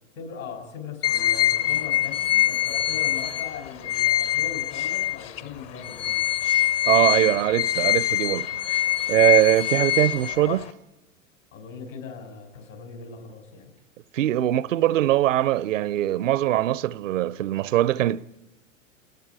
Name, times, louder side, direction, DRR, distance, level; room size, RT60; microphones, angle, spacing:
voice 1, 0.2-6.3 11.5-13.7, left 5 dB, 75° left, 6.2 m, -39 dB
sound 1, 1.0-5.4 5.8-10.7, left 12 dB, 45° left, 1.0 m, -24 dB
voice 2, 6.9-8.8 9.1-10.7 14.1-18.4, right 14 dB, 70° right, 0.7 m, -22 dB
29.0 x 20.0 x 4.8 m
hypercardioid pair, 100°, 40 cm